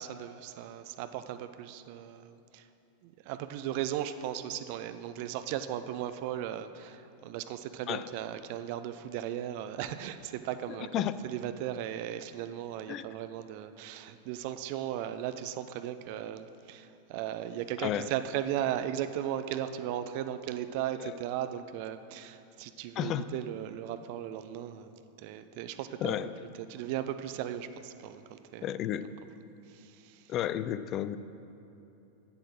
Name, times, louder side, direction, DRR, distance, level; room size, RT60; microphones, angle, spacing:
voice 1, 0.0-2.7 3.0-10.9 11.2-26.2 26.6-28.7 29.7-30.3, right 11 dB, 45° right, 10 dB, 0.5 m, -37 dB
voice 2, 23.0-23.3 26.0-26.3 28.6-29.0 30.3-31.2, left 12 dB, 35° left, 14 dB, 0.4 m, -31 dB
8.5 x 7.7 x 6.1 m, 2.9 s
figure-of-eight pair, 90°, 0 cm